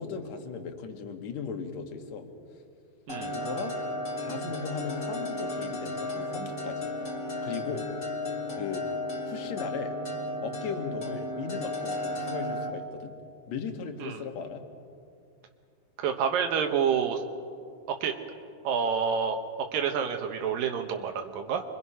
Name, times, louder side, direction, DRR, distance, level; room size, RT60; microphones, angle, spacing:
voice 1, 0.0-2.3 3.3-3.8 4.2-6.9 7.4-7.9 8.5-8.8 9.3-10.0 10.4-13.1 13.5-14.6, left 5 dB, 55° left, 5 dB, 2.6 m, -37 dB
sound 1, 3.1-12.7, left 1 dB, 30° left, 1.6 m, -34 dB
voice 2, 3.1-3.4 14.0-14.2 16.0-17.2 18.0-18.1 18.6-19.4 19.7-21.6, right 7 dB, 75° right, 5 dB, 2.8 m, -28 dB
29.0 x 24.0 x 5.7 m, 2.4 s
omnidirectional pair, 4.1 m